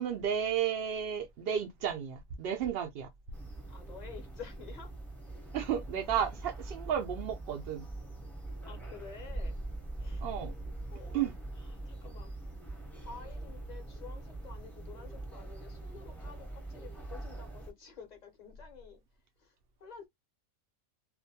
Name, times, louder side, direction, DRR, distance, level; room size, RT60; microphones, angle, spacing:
voice 1, 0.0-3.1 5.5-7.9 10.2-10.5 11.1-11.3, right 9 dB, 85° right, 0.5 m, -33 dB
sound 1, 3.3-17.7, right 2 dB, ahead, 0.3 m, -43 dB
voice 2, 3.7-4.9 6.0-6.4 8.7-9.6 10.0-10.3 10.9-11.3 11.8-12.3 13.0-19.0 19.4-19.5 19.8-20.1, left 6 dB, 40° left, 0.7 m, -50 dB
2.5 x 2.1 x 2.6 m
omnidirectional pair, 1.6 m